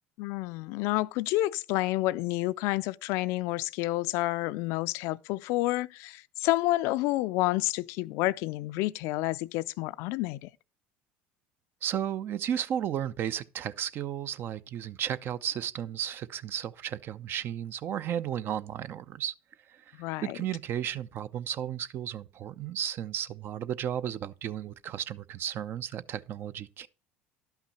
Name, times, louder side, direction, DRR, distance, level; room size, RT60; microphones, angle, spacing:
voice 1, 0.2-10.5 19.9-20.4, left 18 dB, 70° left, 0.4 m, -29 dB
voice 2, 11.8-19.3 19.7-20.0 20.2-26.9, right 10 dB, 50° right, 0.6 m, -34 dB
11.5 x 5.7 x 4.2 m
supercardioid pair, 95°, 5 cm